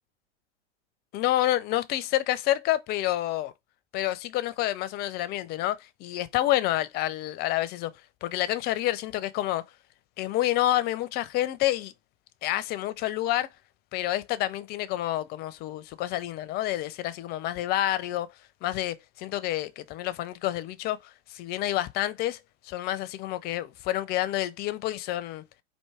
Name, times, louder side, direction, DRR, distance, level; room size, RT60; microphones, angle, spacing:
voice 1, 1.1-3.5 3.9-7.9 8.2-9.6 10.2-11.9 12.4-13.5 13.9-18.3 18.6-22.4 22.6-25.4, left 14 dB, 25° left, 0.5 m, -28 dB
4.5 x 2.7 x 4.3 m
hypercardioid pair, 100°, 36 cm